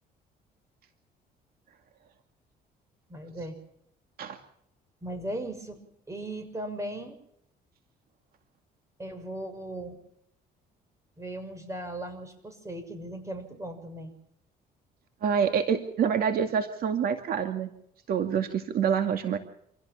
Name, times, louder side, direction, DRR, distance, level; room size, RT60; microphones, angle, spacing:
voice 1, 3.1-3.6 5.0-5.8 6.1-7.2 9.0-10.0 11.2-14.1, right 1 dB, 15° right, 7 dB, 6.4 m, -37 dB
voice 2, 15.2-17.7 18.1-19.4, right 7 dB, 60° right, 6 dB, 2.3 m, -26 dB
27.5 x 17.0 x 6.0 m, 0.74 s
cardioid pair, 110°, 17 cm